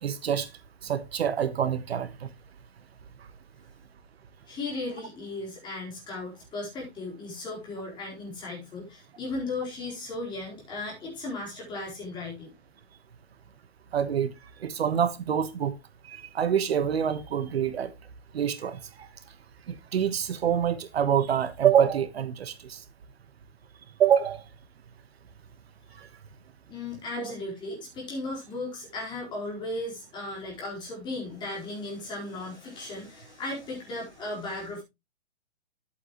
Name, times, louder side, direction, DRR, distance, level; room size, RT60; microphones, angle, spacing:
voice 1, 0.0-0.5 0.8-2.3 13.9-14.3 14.6-15.7 16.0-17.9 18.3-19.1 19.7-22.8 24.0-24.4 25.9-26.1 27.2-27.3, right 8 dB, 65° right, 1.3 m, -26 dB
voice 2, 4.5-12.5 26.7-34.8, left 2 dB, 15° left, 4.3 m, -36 dB
11.0 x 8.5 x 3.0 m
hypercardioid pair, 160°, 34 cm